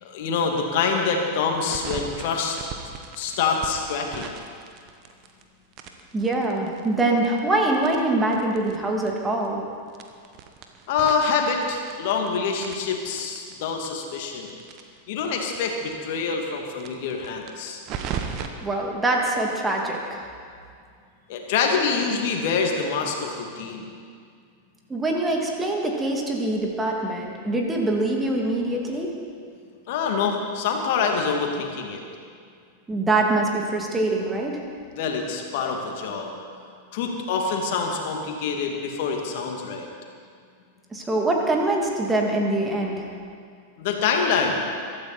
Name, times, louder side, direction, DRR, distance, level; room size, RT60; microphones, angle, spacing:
voice 1, 0.0-2.6 3.2-4.3 10.9-14.5 15.1-17.8 21.3-23.8 29.9-32.0 34.9-36.3 36.9-39.9 43.8-44.6, left 5 dB, 50° left, 2 dB, 2.5 m, -26 dB
sound 1, 1.5-5.4 5.7-8.8 9.0-9.1 9.4-9.5 9.9-12.3 12.6-15.6 15.9-16.0 16.3-16.4 16.7-18.5, right 7 dB, 40° right, 1.4 m, -37 dB
voice 2, 6.1-9.6 18.6-20.3 24.9-29.2 32.9-34.6 40.9-43.1, right 2 dB, 15° right, 0 dB, 2.6 m, -24 dB
22.5 x 13.0 x 4.3 m, 2.2 s
figure-of-eight pair, 90°, 0 cm